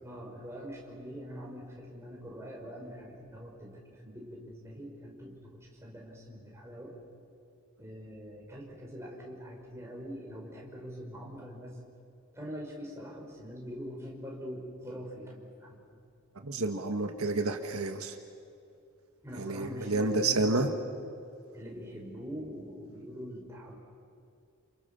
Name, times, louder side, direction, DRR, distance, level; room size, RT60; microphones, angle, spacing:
voice 1, 0.0-6.9 7.8-11.8 12.3-16.0 19.2-20.8 21.5-23.8, equal, 10° right, -2 dB, 5.3 m, -44 dB
voice 2, 16.4-18.2 19.3-20.7, right 3 dB, 80° right, 5 dB, 1.7 m, -29 dB
29.5 x 28.5 x 7.0 m, 2.5 s
head